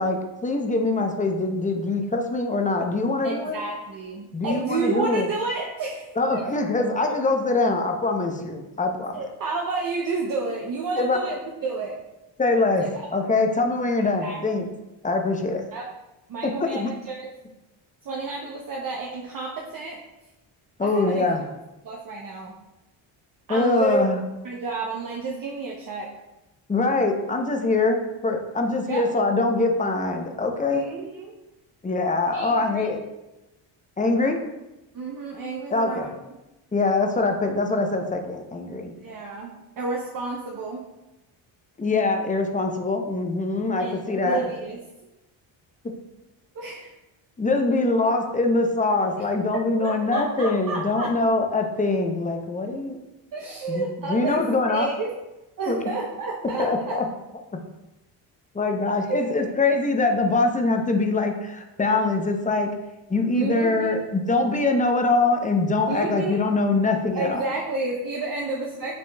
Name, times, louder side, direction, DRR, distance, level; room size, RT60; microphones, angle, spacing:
voice 1, 0.0-3.6 4.3-5.3 6.2-9.1 11.0-11.4 12.4-12.9 13.1-14.7 15.0-15.6 16.4-16.9 20.8-21.4 23.5-24.2 26.7-30.8 31.8-33.0 34.0-34.4 35.7-36.1 36.7-38.9 41.8-44.4 47.4-53.0 53.7-53.8 54.1-54.9 55.7-55.9 56.6-57.0 57.5-57.6 58.5-62.7 63.1-67.4, left 3 dB, 15° left, 4 dB, 0.6 m, -23 dB
voice 2, 3.2-6.5 9.1-12.0 12.8-13.0 14.2-14.4 15.7-15.9 16.3-17.3 18.0-20.0 20.8-21.3 21.8-22.6 23.5-24.0 24.4-26.1 28.9-29.1 30.7-31.3 32.3-32.9 34.9-36.1 39.0-40.9 43.8-44.8 46.5-46.9 49.2-49.3 49.5-51.1 53.3-54.4 54.7-55.1 55.6-57.0 59.1-59.5 59.8-59.9 63.3-63.9 65.9-66.4 67.1-68.9, right 3 dB, 40° right, -1 dB, 0.7 m, -30 dB
6.9 x 2.9 x 2.2 m, 1.0 s
cardioid pair, 75°, 50 cm